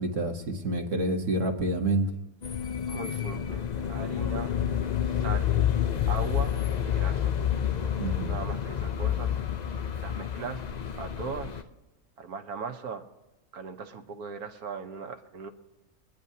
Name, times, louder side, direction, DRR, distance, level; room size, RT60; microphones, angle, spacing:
voice 1, 0.0-2.1 8.0-8.3, right 1 dB, 60° right, 3 dB, 1.6 m, -28 dB
sound 1, 2.4-11.6, left 9 dB, 55° left, 0.5 m, -29 dB
voice 2, 2.8-4.6 5.2-5.6 6.0-7.4 8.3-9.3 10.0-10.7 10.9-11.6 12.2-13.1 13.5-15.5, right 5 dB, 90° right, 5 dB, 1.6 m, -38 dB
23.5 x 10.5 x 2.8 m, 1.0 s
omnidirectional pair, 1.5 m